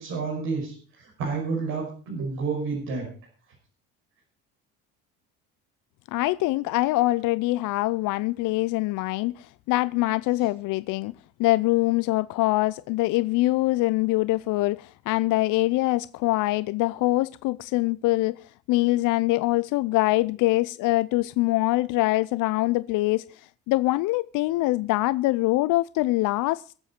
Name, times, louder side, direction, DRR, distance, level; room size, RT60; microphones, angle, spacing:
voice 1, 0.0-3.1, right 4 dB, 70° right, 5.8 m, -30 dB
voice 2, 6.1-11.1 11.4-26.7, left 19 dB, 60° left, 0.5 m, -24 dB
23.0 x 7.8 x 4.4 m
hypercardioid pair, 70°, 35 cm